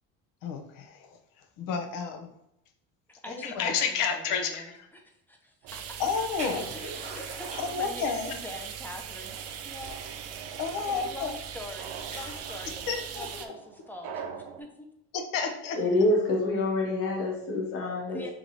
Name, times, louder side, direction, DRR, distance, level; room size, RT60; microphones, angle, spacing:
voice 1, 0.4-2.3 3.3-4.9 6.0-6.8 7.6-8.4 10.6-11.4 12.9-13.4 15.1-15.8, left 6 dB, 70° left, 5 dB, 0.8 m, -31 dB
voice 2, 3.1-6.0 7.1-9.4 9.6-10.4 10.8-14.3 14.6-14.9 15.7-15.9 18.1-18.3, left 1 dB, 5° left, 2 dB, 0.6 m, -44 dB
sound 1, 5.6-14.6, right 6 dB, 80° right, 0.7 m, -45 dB
sound 2, 5.7-13.5, right 8 dB, 50° right, 0.5 m, -40 dB
sound 3, 6.4-8.3 8.7-8.9 9.3-9.4 9.8-10.2 11.1-11.2 11.5-13.4, right 1 dB, 20° right, 1.1 m, -44 dB
voice 3, 15.7-18.3, left 2 dB, 40° left, -1 dB, 1.1 m, -26 dB
3.5 x 3.1 x 3.9 m, 0.80 s
cardioid pair, 120°, 33 cm